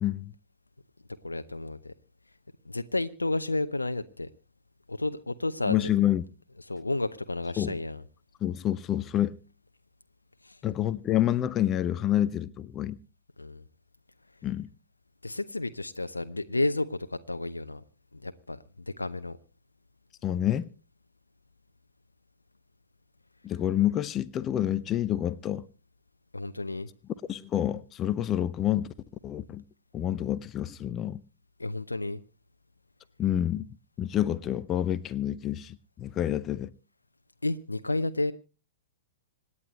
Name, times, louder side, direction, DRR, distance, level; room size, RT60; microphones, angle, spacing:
voice 1, 0.0-0.3 5.6-6.2 7.6-7.8 8.4-9.4 10.6-13.0 14.4-14.7 20.2-20.7 23.4-25.6 27.3-28.9 29.2-29.6 29.9-31.2 33.2-33.7 34.0-36.7, left 12 dB, 25° left, 0.7 m, -28 dB
voice 2, 1.2-1.9 2.7-4.3 4.9-5.8 6.7-8.0 10.4-10.6 13.4-13.6 15.2-17.8 18.1-18.6 18.9-19.4 26.3-26.9 31.6-32.2 37.4-38.3, left 2 dB, 85° left, 0.7 m, -31 dB
26.5 x 9.8 x 3.1 m
figure-of-eight pair, 105°, 0 cm